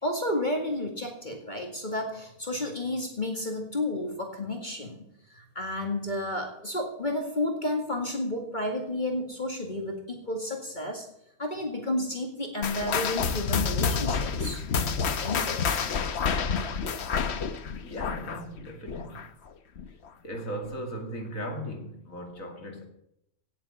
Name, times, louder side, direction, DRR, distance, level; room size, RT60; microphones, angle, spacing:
voice 1, 0.0-5.0 5.3-11.1 11.4-14.6 15.2-15.9, left 1 dB, 35° left, 2.2 m, -31 dB
sound 1, 12.6-19.5 19.8-20.1 20.7-20.8 21.5-21.6, left 5 dB, 55° left, 1.1 m, -29 dB
voice 2, 17.8-19.2 20.2-22.9, equal, 70° left, 2.7 m, -37 dB
17.5 x 7.5 x 7.1 m
omnidirectional pair, 1.5 m